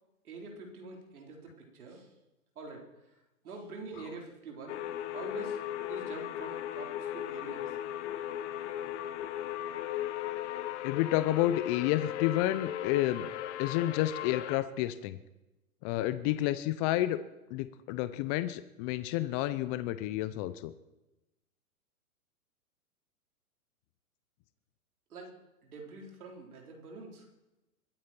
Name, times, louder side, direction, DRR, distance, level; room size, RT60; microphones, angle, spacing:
voice 1, 0.2-2.1 2.6-4.8 5.1-7.8 25.1-25.3 25.6-27.3, right 3 dB, 75° right, 1 dB, 4.1 m, -46 dB
sound 1, 4.7-14.6, left 12 dB, 50° left, 1.2 m, -37 dB
voice 2, 10.8-13.3 13.6-15.2 15.8-17.2 17.5-20.7, left 14 dB, 25° left, 13 dB, 0.6 m, -30 dB
22.5 x 9.6 x 4.4 m, 1.0 s
hypercardioid pair, 120°, 44 cm